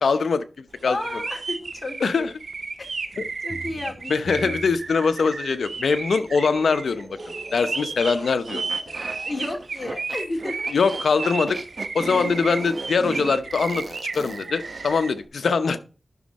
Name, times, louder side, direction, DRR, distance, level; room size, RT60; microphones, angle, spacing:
voice 1, 0.0-1.0 2.0-2.3 3.2-3.3 4.1-7.2 7.5-8.7 10.7-11.6 11.9-13.9 14.1-15.8, left 5 dB, 90° left, 11 dB, 0.8 m, -22 dB
sound 1, 0.8-15.1, right 4 dB, 75° right, 1.5 m, -33 dB
voice 2, 0.9-2.3 2.8-4.5 8.9-10.7, left 2 dB, 40° left, 3 dB, 2.8 m, -33 dB
sound 2, 3.1-9.4, right 2 dB, 30° right, 3.6 m, -42 dB
sound 3, 8.5-15.1, right 3 dB, 55° right, 0.9 m, -37 dB
11.0 x 6.3 x 4.2 m, 0.35 s
cardioid pair, 50°, 0 cm